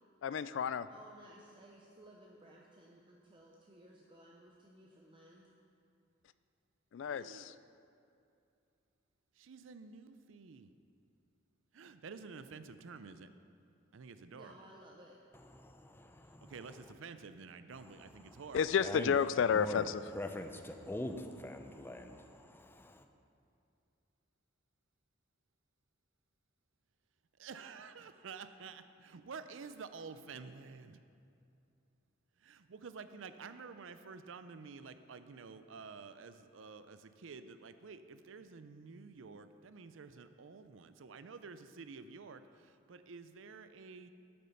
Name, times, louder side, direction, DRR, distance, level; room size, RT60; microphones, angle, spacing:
voice 1, 0.2-0.9 6.9-7.5 18.5-20.0, left 7 dB, 65° left, 0.3 m, -31 dB
voice 2, 0.9-5.5 14.3-15.2, right 1 dB, 25° right, 0.7 m, -58 dB
voice 3, 7.0-7.5 9.3-10.7 11.7-13.3 13.9-14.5 16.3-18.8 27.4-31.0 32.4-44.1, right 5 dB, 70° right, 0.5 m, -50 dB
voice 4, 15.3-16.5 18.8-19.2 19.5-19.9 20.1-23.0, left 1 dB, 10° left, 0.5 m, -44 dB
8.7 x 8.3 x 5.7 m
head